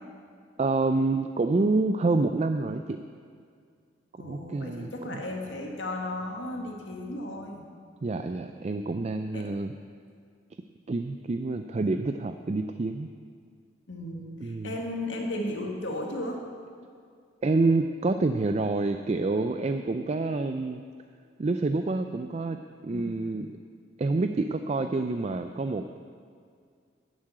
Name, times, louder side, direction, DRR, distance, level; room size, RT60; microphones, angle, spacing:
voice 1, 0.6-3.0 4.2-5.2 8.0-9.7 10.9-13.1 14.4-14.7 17.4-20.8 21.4-22.6 22.8-23.5 24.0-26.0, right 3 dB, 35° right, 8 dB, 0.4 m, -27 dB
voice 2, 4.2-7.6 9.3-9.5 13.9-16.4 22.9-23.1, left 1 dB, 75° left, 1 dB, 2.1 m, -35 dB
11.5 x 7.4 x 8.6 m, 2.2 s
head